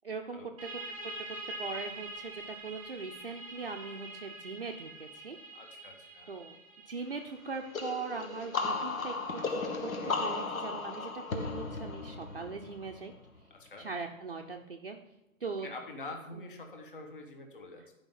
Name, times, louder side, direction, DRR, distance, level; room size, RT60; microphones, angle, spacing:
voice 1, 0.0-0.7 1.6-5.4 6.3-6.5 6.9-9.9 10.2-13.1 13.8-15.0 15.4-15.7, right 4 dB, 45° right, 1 dB, 0.6 m, -40 dB
sound 1, 0.6-11.9, right 2 dB, 5° right, 1.2 m, -46 dB
voice 2, 5.5-6.4 13.5-13.9 15.6-17.9, left 2 dB, 40° left, 4 dB, 1.3 m, -46 dB
sound 2, 7.7-13.3, left 3 dB, 80° left, 1.7 m, -35 dB
10.0 x 5.3 x 5.5 m, 0.95 s
hypercardioid pair, 175°, 41 cm